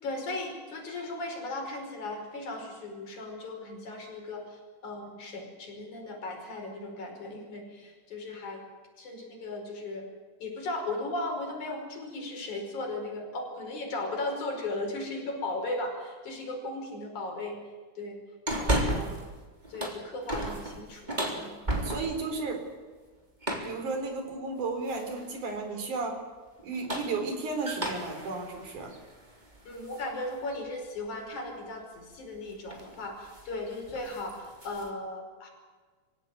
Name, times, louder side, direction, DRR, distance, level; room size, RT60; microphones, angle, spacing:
voice 1, 0.0-8.6 9.0-10.0 10.4-17.6 18.0-18.2 18.6-19.1 19.7-21.1 21.4-21.5 25.7-25.8 29.6-35.5, left 2 dB, 75° left, 2 dB, 6.7 m, -37 dB
sound 1, 18.5-19.3 19.6-22.3 23.4-23.8 24.9-25.3 26.6-30.1 30.5-30.6 32.1-32.4 32.7-33.0 33.3-33.5 33.8-34.9, right 1 dB, 15° right, 3.5 m, -33 dB
voice 2, 21.8-22.7 23.5-26.2 26.6-28.9, right 3 dB, 80° right, 4 dB, 5.4 m, -33 dB
25.5 x 17.0 x 9.4 m, 1.4 s
omnidirectional pair, 3.5 m